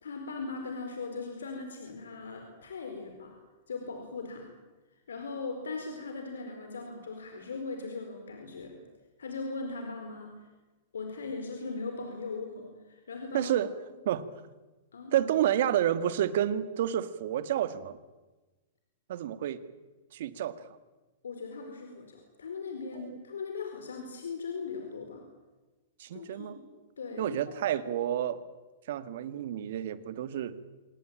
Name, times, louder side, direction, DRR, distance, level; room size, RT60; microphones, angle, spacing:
voice 1, 0.0-3.3 3.7-4.5 5.1-8.8 9.2-10.5 10.9-13.5 14.9-15.1 21.2-25.2 26.1-26.7 27.0-27.5, left 4 dB, 90° left, 4 dB, 4.5 m, -39 dB
voice 2, 13.3-13.8 14.1-14.2 15.1-18.0 19.1-19.6 20.1-20.6 26.0-26.6 27.2-28.4 28.9-30.6, right 11 dB, 65° right, 13 dB, 1.8 m, -29 dB
26.0 x 19.0 x 9.0 m, 1.2 s
hypercardioid pair, 125°, 0 cm